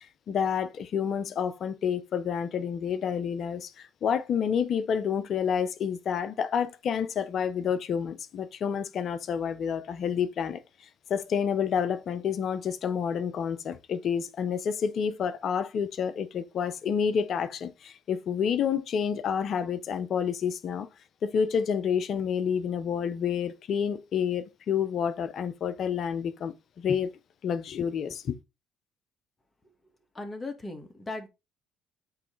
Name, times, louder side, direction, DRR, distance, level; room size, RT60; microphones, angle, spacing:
voice 1, 0.0-10.6 11.1-20.9 21.2-27.1 27.4-28.3, left 7 dB, 55° left, 0.7 m, -29 dB
voice 2, 30.1-31.3, left 2 dB, 25° left, 1.7 m, -37 dB
8.5 x 3.2 x 3.9 m
hypercardioid pair, 60°, 0 cm